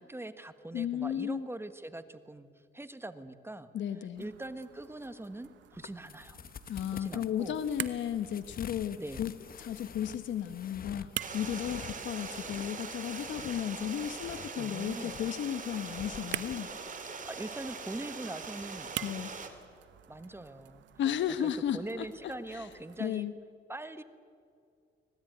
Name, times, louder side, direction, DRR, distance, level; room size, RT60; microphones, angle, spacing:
voice 1, 0.0-2.5 2.7-3.7 4.2-6.4 6.9-7.6 8.9-9.2 14.6-15.1 17.2-18.9 20.1-20.9 21.4-23.3 23.7-24.0, right 2 dB, 10° right, 11 dB, 1.4 m, -42 dB
voice 2, 0.7-1.4 3.7-4.2 6.7-11.1 11.3-16.7 19.0-19.3 21.0-22.1 22.5-22.7 23.0-23.3, left 10 dB, 70° left, 10 dB, 1.1 m, -34 dB
sound 1, 4.1-23.1, right 11 dB, 70° right, 1.1 m, -47 dB
sound 2, 5.7-16.6, left 7 dB, 45° left, 1.0 m, -48 dB
Stream, 11.2-19.5, right 5 dB, 40° right, 3.1 m, -42 dB
25.0 x 18.5 x 9.2 m, 2.4 s
cardioid pair, 90°, 20 cm